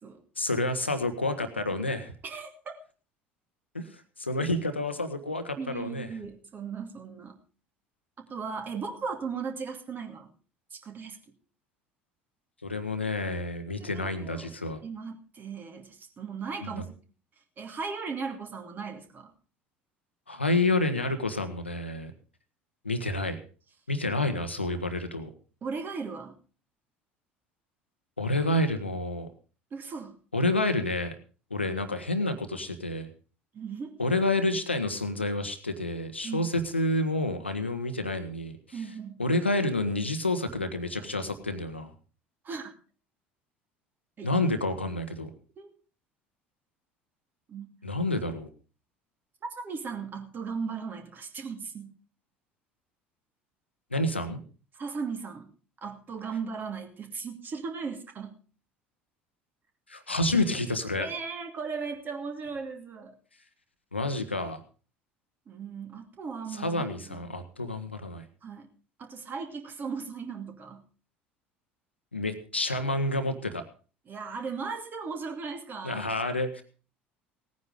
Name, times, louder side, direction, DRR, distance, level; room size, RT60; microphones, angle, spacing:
voice 1, 0.4-2.1 3.7-6.1 12.6-14.8 16.6-16.8 20.3-22.1 22.8-23.4 23.9-25.3 28.2-29.3 30.3-31.1 31.5-33.1 34.0-38.8 39.2-41.9 44.2-45.3 47.8-48.5 53.9-54.4 59.9-61.1 63.9-64.6 66.5-68.2 72.1-73.6 75.8-76.6, left 2 dB, 85° left, 8 dB, 1.3 m, -29 dB
voice 2, 2.2-2.7 5.6-7.4 8.2-10.3 10.7-11.2 13.8-16.8 17.6-19.3 25.6-26.4 29.7-30.2 33.5-33.9 36.2-36.5 38.7-39.2 42.4-42.7 44.2-44.3 45.6-45.7 47.5-47.7 49.6-52.0 54.7-55.5 55.8-58.4 61.0-63.2 65.5-67.2 68.4-68.7 69.0-70.9 74.1-76.1, right 5 dB, 35° right, 5 dB, 2.6 m, -37 dB
17.5 x 9.6 x 5.0 m, 0.38 s
figure-of-eight pair, 65°, 6 cm